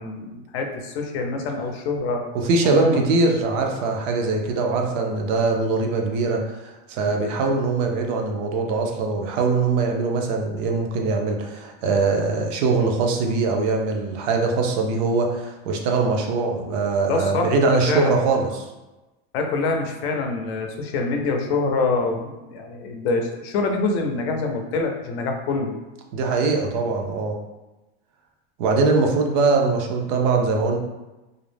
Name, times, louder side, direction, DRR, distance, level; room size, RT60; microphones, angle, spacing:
voice 1, 0.0-2.2 2.6-3.0 17.1-18.1 19.3-25.8, left 3 dB, 80° left, 3 dB, 0.5 m, -25 dB
voice 2, 2.3-18.7 26.1-27.4 28.6-30.8, right 3 dB, 50° right, 2 dB, 0.4 m, -22 dB
2.4 x 2.0 x 3.2 m, 1.1 s
supercardioid pair, 160°, 31 cm